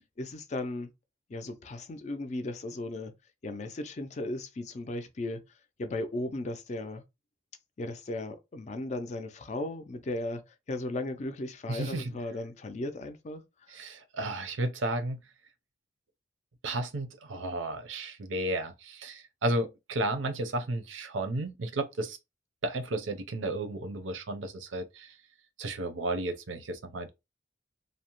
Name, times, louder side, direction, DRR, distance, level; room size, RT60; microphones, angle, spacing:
voice 1, 0.2-0.9 1.3-3.1 3.4-5.4 5.8-7.0 7.8-10.4 10.7-13.7, left 2 dB, 40° left, 0.4 m, -36 dB
voice 2, 11.7-12.1 13.7-15.2 16.6-22.2 22.6-25.1 25.6-27.1, right 2 dB, 85° right, 0.6 m, -33 dB
2.7 x 2.0 x 2.9 m
head